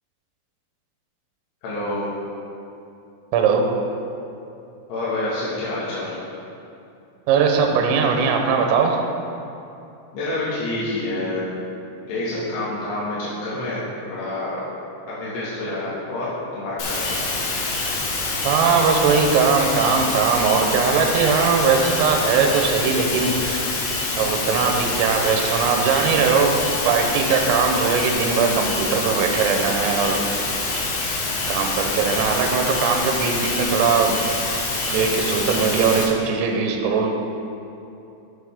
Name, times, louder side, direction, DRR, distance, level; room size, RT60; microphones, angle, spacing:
voice 1, 1.6-2.1 4.9-6.2 10.1-11.5 12.1-13.8 14.1-14.6 15.1-17.2, left 2 dB, 65° left, -11 dB, 3.6 m, -27 dB
voice 2, 3.3-3.7 7.3-9.0 18.5-23.7 24.2-26.6 26.9-30.2 31.5-34.2 34.9-37.1, right 5 dB, 85° right, 3 dB, 3.5 m, -20 dB
sound 1, 16.8-36.0, left 3 dB, 85° left, 4.2 m, -26 dB
13.0 x 6.6 x 3.6 m, 2.8 s
omnidirectional pair, 5.9 m